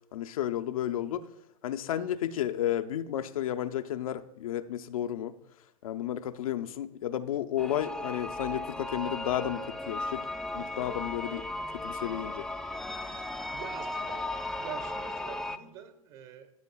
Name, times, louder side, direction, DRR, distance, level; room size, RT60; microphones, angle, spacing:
voice 1, 0.1-1.3 1.6-5.3 5.8-10.3 10.5-11.4 11.7-12.4, left 11 dB, 70° left, 0.5 m, -32 dB
sound 1, 7.6-15.6, left 2 dB, 5° left, 0.3 m, -36 dB
voice 2, 13.5-16.5, right 8 dB, 50° right, 1.3 m, -46 dB
15.0 x 6.6 x 2.3 m
hypercardioid pair, 95°, 19 cm